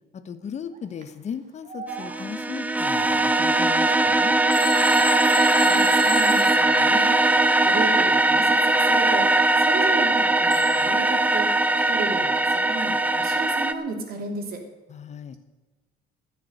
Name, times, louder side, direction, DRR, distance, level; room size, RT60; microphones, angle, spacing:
voice 1, 0.1-4.4 14.9-15.4, left 7 dB, 45° left, 11 dB, 1.1 m, -37 dB
sound 1, 0.7-1.0 1.6-6.0 6.3-7.0 7.5-7.7 8.5-10.2 10.4-11.2, right 5 dB, 45° right, 2.2 m, -42 dB
sound 2, 1.9-13.7, right 2 dB, 10° right, 0.7 m, -20 dB
Telephone, 4.5-7.5 10.5-11.0, left 1 dB, 25° left, 4.6 m, -32 dB
voice 2, 5.6-14.6, right 3 dB, 60° right, 2 dB, 3.2 m, -34 dB
15.5 x 6.9 x 9.9 m, 1.2 s
cardioid pair, 110°, 17 cm